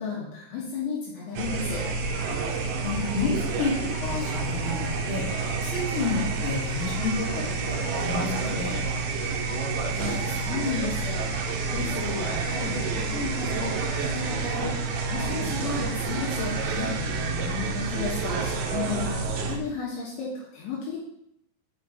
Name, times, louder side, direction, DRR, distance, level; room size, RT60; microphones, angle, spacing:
voice 1, 0.0-1.8 9.9-11.3 11.7-16.9 17.7-21.0, left 5 dB, 70° left, -5 dB, 3.3 m, -33 dB
sound 1, 1.4-19.6, right 4 dB, 80° right, 2.9 m, -29 dB
voice 2, 2.8-5.3 5.6-8.8 16.9-17.8, left 4 dB, 30° left, -8 dB, 2.9 m, -30 dB
6.5 x 6.5 x 3.8 m, 0.77 s
omnidirectional pair, 5.6 m